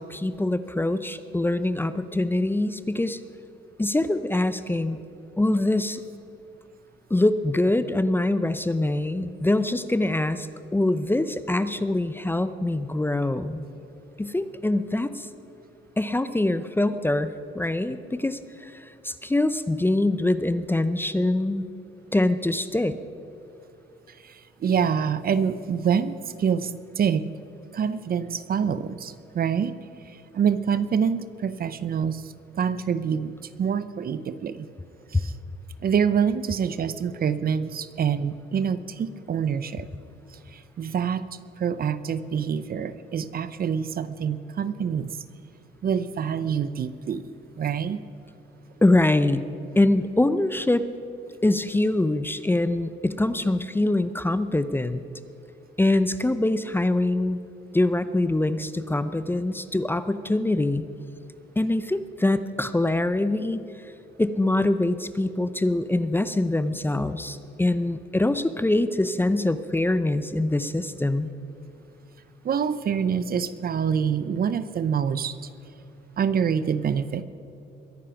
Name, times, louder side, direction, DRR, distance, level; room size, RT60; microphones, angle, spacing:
voice 1, 0.0-3.2 3.8-5.0 5.4-6.0 7.1-10.5 10.7-13.7 14.2-15.3 16.0-21.6 22.1-23.0 35.1-35.2 48.8-49.4 49.8-50.9 51.4-55.0 55.8-57.4 57.7-60.8 61.6-63.6 64.2-71.3, left 2 dB, 10° left, 12 dB, 0.6 m, -24 dB
voice 2, 24.2-27.3 27.7-29.7 30.1-34.7 35.1-35.3 35.8-39.9 40.5-41.3 41.6-45.1 45.8-47.3 47.6-48.0 72.4-75.4 76.2-77.2, right 7 dB, 50° right, 14 dB, 0.7 m, -26 dB
22.0 x 10.0 x 5.9 m, 2.6 s
cardioid pair, 90°, 20 cm